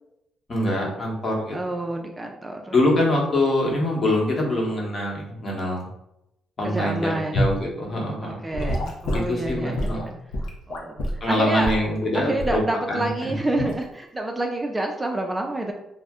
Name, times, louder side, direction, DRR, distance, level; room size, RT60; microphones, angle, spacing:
voice 1, 0.5-1.6 2.7-5.8 6.6-8.4 9.1-10.1 11.2-12.6 12.9-13.1, left 1 dB, 40° left, -2 dB, 1.0 m, -24 dB
voice 2, 1.5-2.7 6.6-7.4 8.2-10.1 10.7-11.7 12.1-15.7, right 2 dB, 15° right, 2 dB, 0.4 m, -28 dB
Gurgling / Sink (filling or washing) / Liquid, 7.3-7.6 8.5-11.2 11.6-11.9 12.4-12.6 13.6-13.8, equal, 80° left, 0.6 m, -27 dB
2.5 x 2.1 x 3.5 m, 0.83 s
cardioid pair, 90°, 0 cm